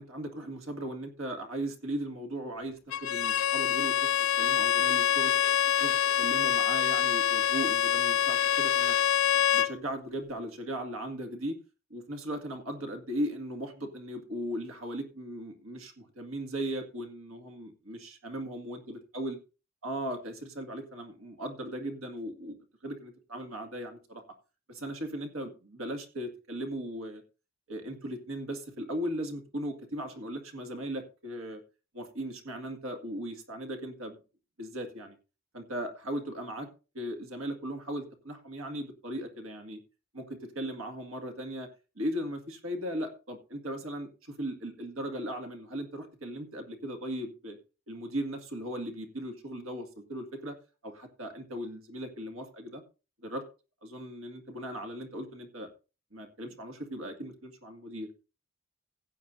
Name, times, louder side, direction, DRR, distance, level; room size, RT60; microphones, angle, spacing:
voice 1, 0.0-4.1 4.4-5.3 5.8-8.9 9.4-11.6 11.9-19.4 19.8-22.6 22.8-24.2 24.7-27.2 27.7-31.6 31.9-34.2 34.6-35.2 35.5-36.7 36.9-39.8 40.1-41.7 42.0-47.6 47.9-50.6 50.8-52.8 53.2-53.4 53.8-55.7 56.1-58.1, right 1 dB, 85° right, 2.0 m, -37 dB
Bowed string instrument, 2.9-9.8, left 10 dB, 75° left, 0.4 m, -26 dB
16.0 x 8.9 x 2.7 m
head